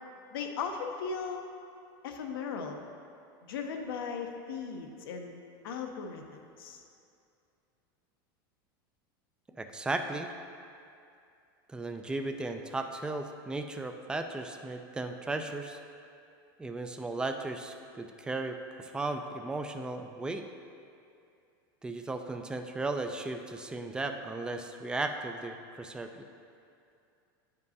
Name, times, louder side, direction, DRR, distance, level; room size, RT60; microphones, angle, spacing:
voice 1, 0.3-1.4 2.0-2.8 3.5-5.4 5.6-6.8, left 5 dB, 85° left, 4 dB, 0.7 m, -37 dB
voice 2, 9.6-10.3 11.7-15.8 16.6-20.4 21.8-26.3, right 2 dB, 5° right, 5 dB, 0.4 m, -36 dB
9.3 x 5.3 x 2.7 m, 2.5 s
supercardioid pair, 120°, 12 cm